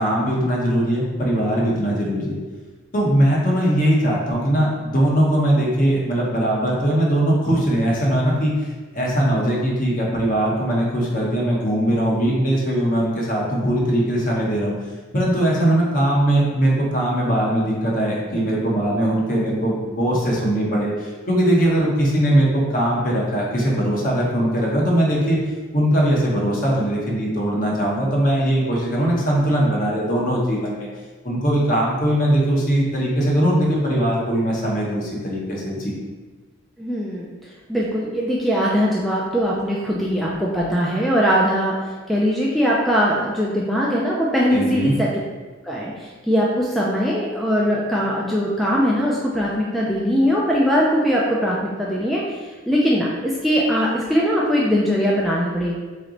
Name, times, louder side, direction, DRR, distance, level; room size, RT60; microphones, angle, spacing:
voice 1, 0.0-2.4 2.9-14.7 15.1-25.4 25.7-30.9 31.2-35.9 44.5-44.9, right 1 dB, 45° left, -4 dB, 1.0 m, -20 dB
voice 2, 36.8-37.3 37.7-41.7 42.1-45.1 45.7-52.2 52.7-55.8, equal, ahead, -5 dB, 0.4 m, -21 dB
3.9 x 3.3 x 3.8 m, 1.3 s
head